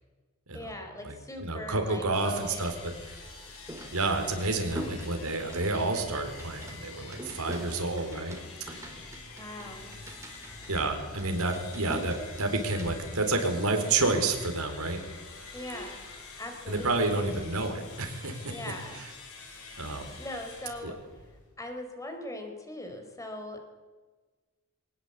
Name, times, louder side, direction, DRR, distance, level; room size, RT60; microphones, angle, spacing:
voice 1, 0.5-2.7 9.4-9.9 15.5-16.0 16.4-17.3 18.5-19.0 20.2-21.0 21.6-23.6, left 1 dB, 15° left, 4 dB, 4.0 m, -40 dB
voice 2, 1.4-3.2 3.9-8.3 8.7-8.9 10.7-15.0 16.7-18.5 19.8-20.1 20.8-20.9, right 2 dB, 90° right, 5 dB, 4.3 m, -29 dB
sound 1, 2.1-21.6, left 4 dB, 85° left, 6.4 m, -47 dB
sound 2, 3.2-12.9, right 1 dB, 15° right, 3.9 m, -44 dB
23.0 x 19.5 x 8.4 m, 1.3 s
head